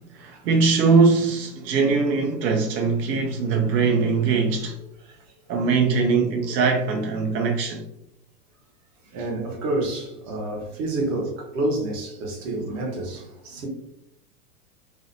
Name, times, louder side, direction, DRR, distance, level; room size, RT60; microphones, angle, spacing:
voice 1, 0.0-4.8 5.5-7.9, right 4 dB, 90° right, 0.6 m, -21 dB
voice 2, 9.1-13.7, right 2 dB, 50° right, 0.9 m, -28 dB
2.5 x 2.1 x 2.5 m
supercardioid pair, 145°, 49 cm